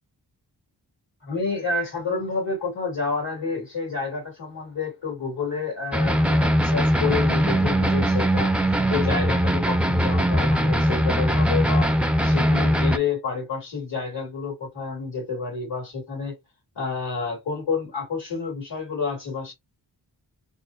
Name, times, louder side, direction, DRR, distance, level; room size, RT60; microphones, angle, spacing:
voice 1, 1.2-11.9 12.2-16.3 16.8-19.5, left 4 dB, 80° left, 2.2 m, -29 dB
sound 1, 5.9-13.0, equal, 5° right, 0.5 m, -21 dB
4.1 x 2.0 x 2.6 m
cardioid pair, 45°, 43 cm